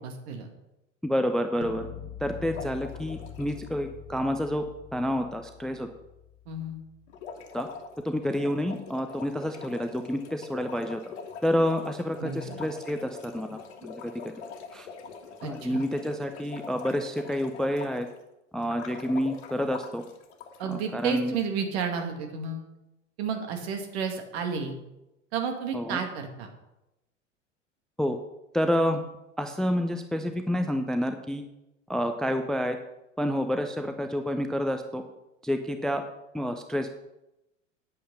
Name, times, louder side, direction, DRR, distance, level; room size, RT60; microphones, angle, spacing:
voice 1, 0.0-0.5 6.5-6.8 12.2-12.6 15.4-15.8 20.6-22.7 23.2-24.7 25.3-26.5, right 6 dB, 55° right, 4 dB, 2.2 m, -32 dB
voice 2, 1.0-1.9 2.2-4.6 4.9-5.9 7.5-7.7 8.0-11.1 11.4-14.1 14.7-14.9 15.4-18.1 18.5-20.0 20.7-21.4 25.7-26.0 28.0-28.2 28.5-29.0 29.4-31.4 31.9-32.8 33.2-35.0 35.4-36.0 36.3-36.9, equal, ahead, 7 dB, 0.5 m, -29 dB
sound 1, 1.6-7.6, left 10 dB, 30° left, 0.8 m, -45 dB
sound 2, 2.5-3.7 7.1-18.2 18.6-21.1, left 5 dB, 60° left, 1.6 m, -43 dB
9.6 x 8.4 x 5.6 m, 0.93 s
figure-of-eight pair, 80°, 38 cm